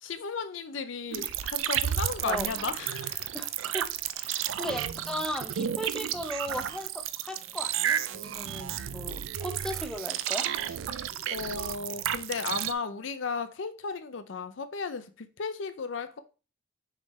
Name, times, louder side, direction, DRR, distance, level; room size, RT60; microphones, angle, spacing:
voice 1, 0.0-3.4 11.3-16.2, left 5 dB, 70° left, 0.5 m, -35 dB
sound 1, 1.1-12.7, right 10 dB, 90° right, 0.4 m, -32 dB
voice 2, 3.3-3.9 4.1-10.5, equal, 5° left, 0.7 m, -37 dB
6.4 x 3.8 x 4.2 m
head